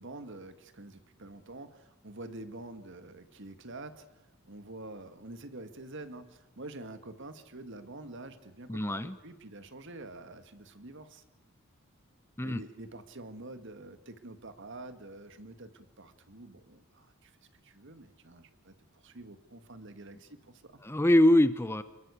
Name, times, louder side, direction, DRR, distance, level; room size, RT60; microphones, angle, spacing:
voice 1, 0.0-4.1 4.5-11.2 12.4-17.3 17.6-20.8, right 2 dB, 60° right, 10 dB, 2.0 m, -47 dB
voice 2, 8.7-9.2 12.4-12.6 20.8-21.8, left 1 dB, 10° left, 13 dB, 0.9 m, -23 dB
26.0 x 22.5 x 8.4 m, 0.98 s
head